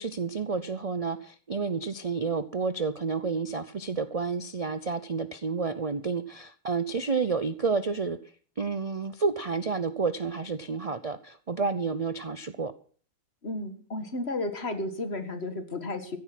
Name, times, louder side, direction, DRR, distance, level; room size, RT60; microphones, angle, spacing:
voice 1, 0.0-8.2 8.6-12.7, right 4 dB, 40° right, 12 dB, 0.5 m, -30 dB
voice 2, 13.4-16.2, left 2 dB, 45° left, 8 dB, 2.0 m, -33 dB
15.5 x 10.5 x 6.0 m, 0.44 s
omnidirectional pair, 1.6 m